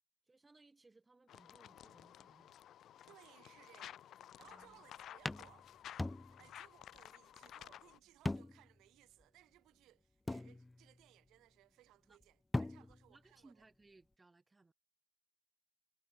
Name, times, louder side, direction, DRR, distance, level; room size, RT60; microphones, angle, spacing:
voice 1, 0.3-2.5 3.0-3.2 4.5-4.8 6.4-6.5 12.1-12.2 13.1-14.7, right 3 dB, 20° right, 4.5 m, -66 dB
sound 1, 1.3-8.0, left 11 dB, 70° left, 4.6 m, -55 dB
voice 2, 3.1-5.7 6.3-13.6, right 15 dB, 80° right, 6.0 m, -65 dB
sound 2, 4.4-4.7 5.2-6.7 6.9-7.0 8.2-8.8 9.2-9.3 10.3-11.0 12.2-12.3 12.5-13.2, left 2 dB, 15° left, 1.0 m, -41 dB
cardioid pair, 80°, 0 cm